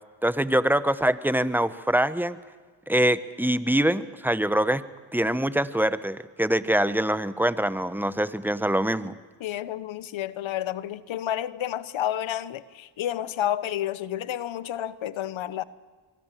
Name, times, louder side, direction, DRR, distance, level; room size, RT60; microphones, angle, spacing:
voice 1, 0.2-2.4 2.9-4.8 5.1-9.1, right 1 dB, 5° right, 1.2 m, -24 dB
voice 2, 9.4-15.6, left 11 dB, 75° left, 1.0 m, -30 dB
24.5 x 23.0 x 7.6 m
supercardioid pair, 55°, 47 cm